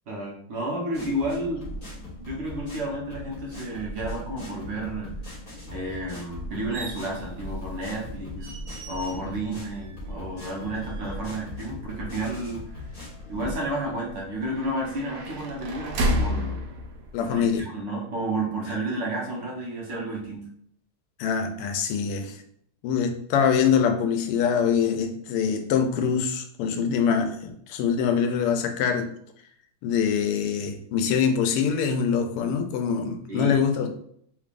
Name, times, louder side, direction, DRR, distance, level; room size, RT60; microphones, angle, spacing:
voice 1, 0.1-1.7 1.9-5.1 5.7-8.5 8.9-12.9 13.3-16.6 17.2-20.4 33.3-33.9, right 1 dB, 65° right, -3 dB, 1.4 m, -31 dB
sound 1, 0.9-13.5, left 1 dB, 25° left, 1.2 m, -39 dB
sound 2, 6.7-17.6, equal, 85° right, 1.6 m, -34 dB
voice 2, 17.1-17.6 21.2-22.3 22.8-29.1 29.8-33.9, left 7 dB, 85° left, 6 dB, 1.5 m, -24 dB
3.8 x 3.2 x 2.5 m, 0.67 s
omnidirectional pair, 2.4 m